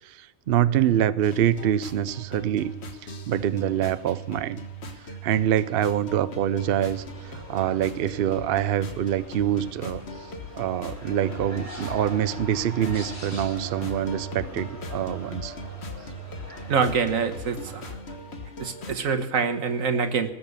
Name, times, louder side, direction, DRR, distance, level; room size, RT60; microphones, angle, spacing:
voice 1, 0.0-2.7 3.0-4.6 5.2-10.0 10.5-15.5, right 10 dB, 60° right, 15 dB, 0.6 m, -25 dB
sound 1, 1.2-19.0, equal, 50° left, 1.6 m, -39 dB
sound 2, 6.6-18.0, equal, 10° left, 2.9 m, -43 dB
voice 2, 16.7-18.0 18.6-20.3, right 5 dB, 75° right, 7 dB, 1.6 m, -25 dB
19.5 x 7.1 x 6.7 m, 1.2 s
omnidirectional pair, 1.4 m